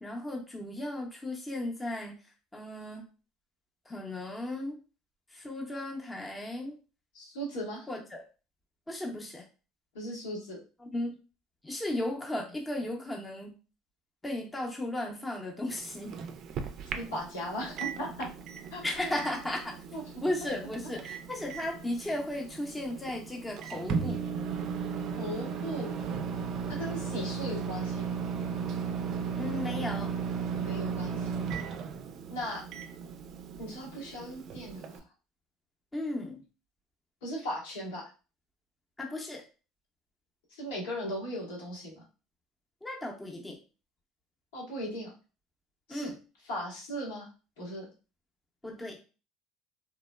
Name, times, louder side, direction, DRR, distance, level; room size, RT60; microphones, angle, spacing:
voice 1, 0.0-2.1 2.5-3.0 3.9-4.8 5.4-6.7 7.9-8.0 8.9-9.4 10.9-11.2 11.6-13.5 14.2-16.1 18.8-19.7 20.2-24.2 29.4-30.1 35.9-36.4 39.0-39.4 42.8-43.5 45.9-46.1 48.6-49.0, left 1 dB, 15° left, 0 dB, 0.6 m, -35 dB
voice 2, 7.1-7.9 9.9-10.6 16.9-18.3 18.7-19.2 19.9-20.0 20.8-20.9 25.2-25.9 26.8-28.2 30.6-31.5 32.3-32.6 33.6-34.9 37.2-38.0 40.6-42.0 44.5-45.1 45.9-46.1 46.4-47.3 47.6-47.8, equal, 85° left, -4 dB, 1.3 m, -37 dB
Microwave oven, 15.7-35.0, right 6 dB, 55° right, 0.4 m, -36 dB
2.9 x 2.0 x 2.2 m, 0.34 s
supercardioid pair, 90°, 0 cm